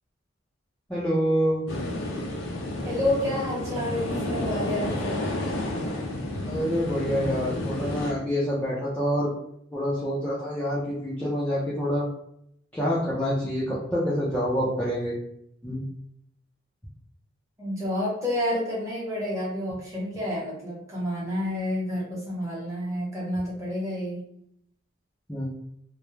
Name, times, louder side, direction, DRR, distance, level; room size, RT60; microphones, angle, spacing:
voice 1, 0.9-1.7 6.5-9.3 9.7-12.1 12.7-15.2 15.6-15.8 25.3-25.5, equal, 5° left, -9 dB, 0.4 m, -27 dB
sound 1, 1.7-8.1, left 1 dB, 70° left, 0.5 m, -31 dB
voice 2, 2.8-5.3 17.6-24.2, left 1 dB, 15° right, -6 dB, 0.9 m, -29 dB
2.2 x 2.0 x 3.0 m, 0.73 s
head